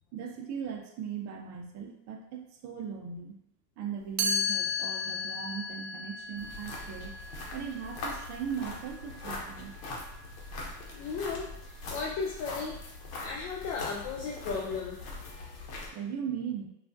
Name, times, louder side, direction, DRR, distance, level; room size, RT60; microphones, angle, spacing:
voice 1, 0.1-3.4 3.8-7.1 7.5-9.7 15.9-16.7, right 7 dB, 35° right, 3 dB, 0.5 m, -38 dB
Chime, 4.2-10.0, left 3 dB, 80° right, 0.7 m, -35 dB
sound 1, 6.4-15.9, left 2 dB, 75° left, 0.9 m, -42 dB
voice 2, 10.9-12.8 13.2-15.0, left 5 dB, 45° left, -2 dB, 0.5 m, -35 dB
3.2 x 2.4 x 2.6 m, 0.79 s
supercardioid pair, 120°, 47 cm